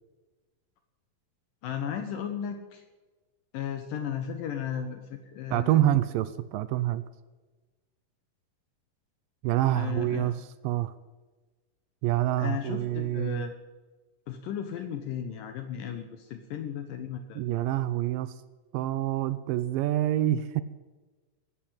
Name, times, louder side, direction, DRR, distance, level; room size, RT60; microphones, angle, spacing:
voice 1, 1.6-2.8 3.5-5.8 9.7-10.3 12.4-13.5 14.3-17.4, left 8 dB, 70° left, 6 dB, 2.5 m, -35 dB
voice 2, 5.5-7.0 9.4-10.9 12.0-13.5 17.4-18.3 18.7-20.6, right 13 dB, 80° right, 14 dB, 2.2 m, -27 dB
18.5 x 8.0 x 8.7 m, 1.2 s
omnidirectional pair, 4.3 m